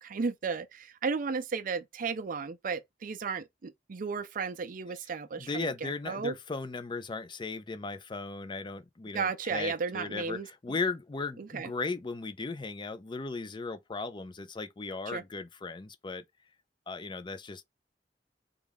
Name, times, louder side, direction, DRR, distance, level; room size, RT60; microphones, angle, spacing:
voice 1, 0.0-6.3 9.1-10.8 11.4-11.7 15.1-15.2, right 5 dB, 50° right, 0.5 m, -34 dB
voice 2, 5.4-16.2 16.9-17.6, left 4 dB, 25° left, 0.4 m, -37 dB
3.6 x 2.3 x 3.4 m
head